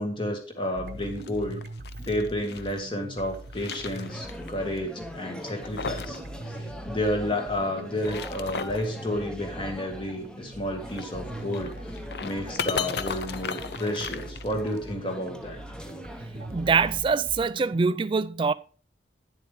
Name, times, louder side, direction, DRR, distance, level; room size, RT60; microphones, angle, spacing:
voice 1, 0.0-1.6 2.0-6.2 6.5-11.7 12.2-15.6, left 1 dB, 30° left, 1.8 m, -31 dB
sound 1, 0.7-17.8, right 1 dB, 55° right, 0.8 m, -42 dB
sound 2, 1.0-2.8 3.3-4.5 4.8-4.9 5.4-6.2 6.5-6.6 7.8-8.9 10.8-14.9, left 5 dB, 65° left, 0.6 m, -36 dB
sound 3, 4.0-17.0, equal, 5° left, 0.8 m, -42 dB
voice 2, 16.5-18.5, right 5 dB, 30° right, 0.3 m, -24 dB
9.6 x 7.6 x 3.4 m
head